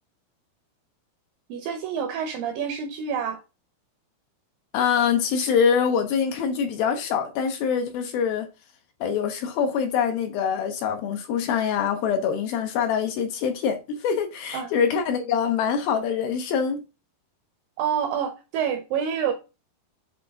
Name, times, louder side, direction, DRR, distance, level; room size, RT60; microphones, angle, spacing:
voice 1, 1.5-3.4 14.5-14.7 17.8-19.3, right 8 dB, 80° right, 2.0 m, -27 dB
voice 2, 4.7-8.5 9.0-16.8, left 7 dB, 75° left, 2.2 m, -24 dB
7.8 x 3.6 x 3.5 m
omnidirectional pair, 4.7 m